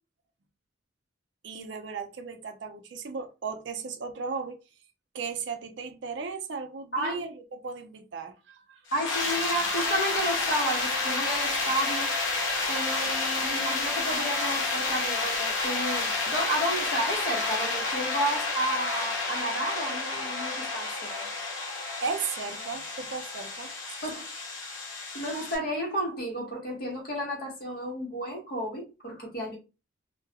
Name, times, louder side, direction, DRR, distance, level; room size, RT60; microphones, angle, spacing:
voice 1, 1.4-4.6 5.1-8.8 22.0-23.7, right 5 dB, 65° right, 0.4 m, -36 dB
voice 2, 6.9-7.3 8.9-12.1 12.7-21.3 24.0-24.3 25.1-29.6, right 1 dB, 50° left, 1.0 m, -32 dB
sound 1, 8.9-25.6, left 3 dB, 75° left, 0.7 m, -30 dB
2.3 x 2.1 x 2.8 m
head